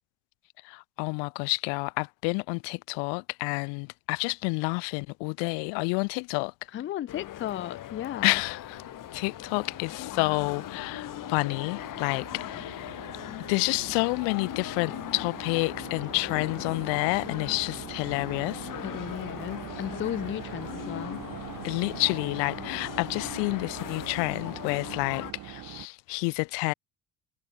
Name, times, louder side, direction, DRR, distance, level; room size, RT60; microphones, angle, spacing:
voice 1, 0.6-6.5 8.2-8.8 9.1-13.0 13.5-18.7 21.6-26.7, left 35 dB, 80° left, 0.6 m, -29 dB
voice 2, 6.7-8.4 18.8-21.3, left 12 dB, 30° left, 0.4 m, -35 dB
sound 1, 7.1-25.3, left 13 dB, 50° left, 1.0 m, -39 dB
sound 2, 8.3-25.9, right 14 dB, 45° right, 0.6 m, -43 dB
supercardioid pair, 80°, 42 cm